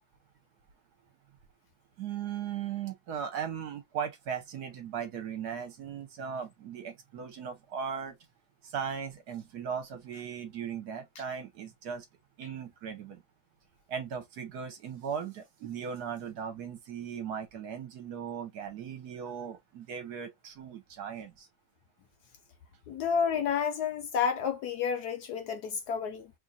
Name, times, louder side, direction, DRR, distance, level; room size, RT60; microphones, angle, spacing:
voice 1, 2.0-8.1 8.6-12.0 12.4-13.2 13.9-21.5, right 7 dB, 65° right, 1.2 m, -38 dB
voice 2, 22.9-26.3, left 7 dB, 70° left, 1.0 m, -30 dB
3.1 x 2.5 x 3.8 m
omnidirectional pair, 2.1 m